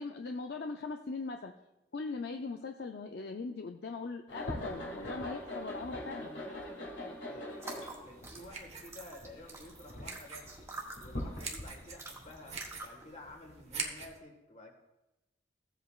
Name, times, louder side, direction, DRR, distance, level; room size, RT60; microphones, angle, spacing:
voice 1, 0.0-1.5 1.9-6.3, left 3 dB, 60° left, 4 dB, 0.5 m, -40 dB
sound 1, 4.3-12.7, left 1 dB, 85° left, 2.3 m, -42 dB
voice 2, 5.0-10.5 11.0-14.7, left 1 dB, 40° left, 2 dB, 1.6 m, -52 dB
sound 2, 7.5-13.1, right 2 dB, 15° right, 1.7 m, -48 dB
sound 3, 7.9-14.2, right 5 dB, 35° right, 1.1 m, -46 dB
16.0 x 7.9 x 2.4 m, 0.97 s
head